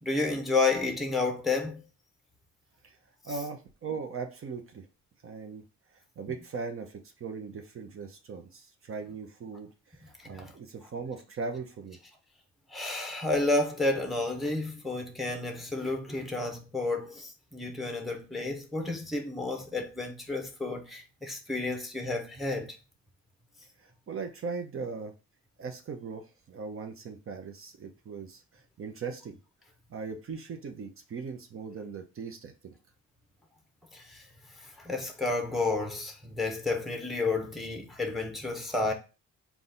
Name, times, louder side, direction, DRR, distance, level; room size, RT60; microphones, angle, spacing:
voice 1, 0.0-1.8 10.2-10.5 12.7-22.8 33.9-34.3 34.6-38.9, left 3 dB, ahead, 0.8 m, -31 dB
voice 2, 3.2-4.9 5.2-5.6 5.9-12.0 23.8-25.1 25.6-29.4 29.9-32.8, right 4 dB, 45° right, 0.7 m, -39 dB
3.9 x 2.4 x 3.8 m
cardioid pair, 90°, 30 cm